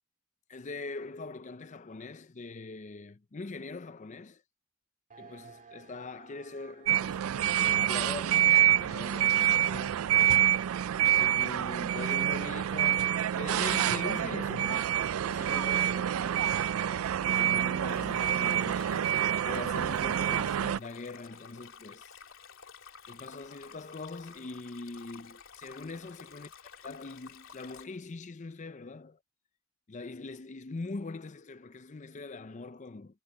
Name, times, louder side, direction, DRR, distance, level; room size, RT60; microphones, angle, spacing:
voice 1, 0.5-4.4 5.2-10.0 11.2-19.2 19.4-22.2 23.1-26.5 26.8-29.2 29.9-33.2, left 3 dB, 35° left, 0.5 m, -42 dB
sound 1, 5.1-16.5, right 5 dB, 40° right, 2.3 m, -60 dB
sound 2, 6.9-20.8, right 11 dB, 85° right, 0.4 m, -27 dB
Stream, 17.9-27.8, left 6 dB, 70° left, 3.2 m, -51 dB
head